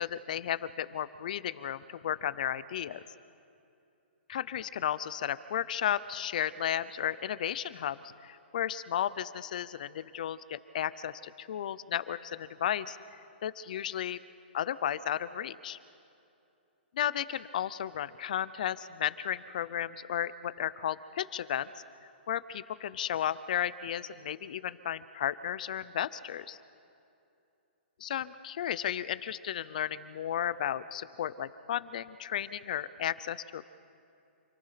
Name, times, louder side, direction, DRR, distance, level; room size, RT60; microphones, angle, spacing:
voice 1, 0.0-3.0 4.3-13.0 13.4-14.2 14.5-15.8 17.0-21.7 22.3-26.6 28.0-33.7, left 10 dB, 45° left, 16 dB, 0.7 m, -34 dB
28.0 x 18.0 x 5.9 m, 2.7 s
hypercardioid pair, 170°, 6 cm